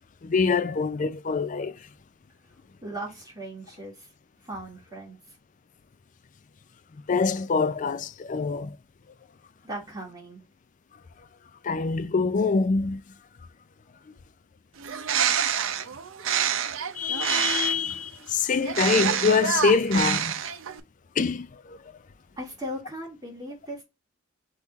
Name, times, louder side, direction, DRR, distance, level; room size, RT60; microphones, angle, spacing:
voice 1, 0.2-1.8 7.1-8.8 11.6-13.0 15.1-15.2 16.9-20.3 21.2-21.8, left 4 dB, 40° left, 0.4 m, -25 dB
voice 2, 2.8-4.1 4.4-5.4 9.6-10.4 22.4-23.8, right 1 dB, 20° right, 1.7 m, -38 dB
Bird, 14.8-17.9 18.6-20.8, right 8 dB, 75° right, 0.6 m, -27 dB
3.6 x 3.0 x 3.9 m
head